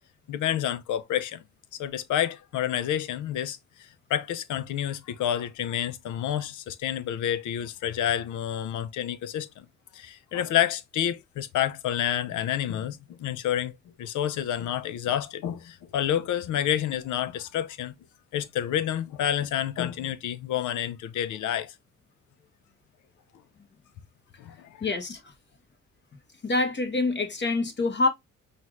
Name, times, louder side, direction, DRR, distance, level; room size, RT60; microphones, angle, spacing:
voice 1, 0.3-1.4 1.8-9.6 9.9-17.9 18.3-21.7 24.4-24.9, left 10 dB, 75° left, 0.7 m, -29 dB
voice 2, 24.8-25.2 26.4-28.1, left 3 dB, 35° left, 1.2 m, -26 dB
5.5 x 2.5 x 3.1 m
cardioid pair, 90°, 30 cm